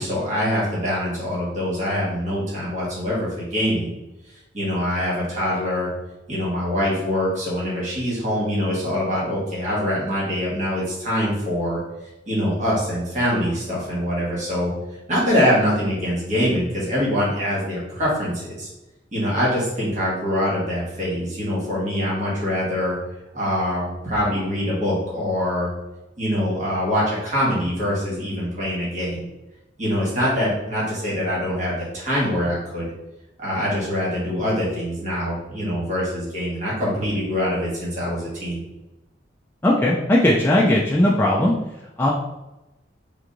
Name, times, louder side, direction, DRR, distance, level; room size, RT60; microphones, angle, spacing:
voice 1, 0.0-3.9 4.5-5.9 6.3-11.8 12.3-14.7 15.1-18.7 19.1-22.9 23.3-25.7 26.2-29.2 29.8-32.9 33.4-38.6, equal, 40° right, -6 dB, 1.3 m, -24 dB
voice 2, 39.6-41.5 42.0-42.1, left 1 dB, 10° left, -4 dB, 0.3 m, -18 dB
3.4 x 3.0 x 2.5 m, 0.97 s
head